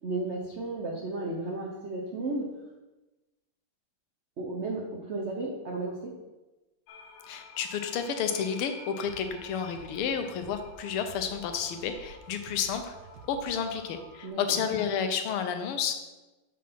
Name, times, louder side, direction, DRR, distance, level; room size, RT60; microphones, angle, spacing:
voice 1, 0.0-2.5 4.4-6.1 14.2-14.6, right 2 dB, 80° right, -1 dB, 0.6 m, -34 dB
sound 1, 6.9-14.3, left 4 dB, 65° left, 1.2 m, -51 dB
voice 2, 7.3-12.9 13.3-15.9, left 7 dB, 80° left, 7 dB, 1.6 m, -31 dB
sound 2, 9.0-14.1, right 3 dB, 60° right, 1.1 m, -51 dB
7.2 x 4.3 x 5.6 m, 1.1 s
omnidirectional pair, 2.4 m